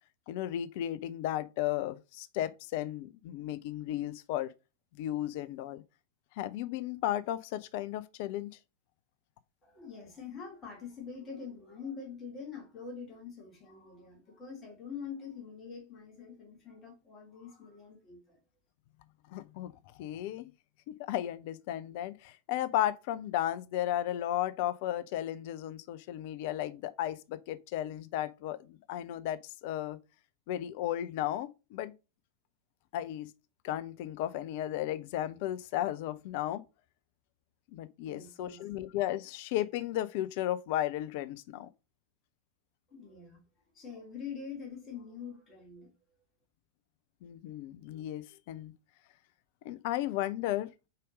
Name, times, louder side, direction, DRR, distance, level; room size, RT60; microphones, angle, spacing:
voice 1, 0.3-4.5 5.0-5.8 6.4-8.5 19.3-19.7 20.0-20.5 20.9-30.0 30.5-31.9 32.9-33.3 33.6-36.6 37.7-41.7 47.2-48.7 49.6-50.7, left 13 dB, 50° left, 0.4 m, -34 dB
voice 2, 9.6-18.4 38.1-38.7 42.9-45.9, left 6 dB, 25° left, 2.6 m, -45 dB
4.9 x 4.2 x 5.1 m
figure-of-eight pair, 90°, 0 cm